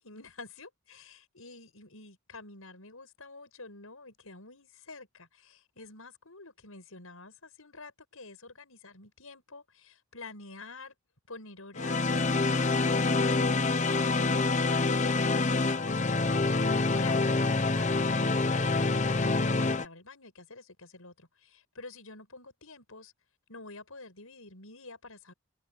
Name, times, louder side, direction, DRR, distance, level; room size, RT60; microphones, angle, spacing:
voice 1, 0.0-10.9 11.3-23.1 23.5-25.3, left 3 dB, 85° left, 6.8 m, -48 dB
sound 1, 11.8-19.8, left 3 dB, 35° left, 0.9 m, -26 dB
head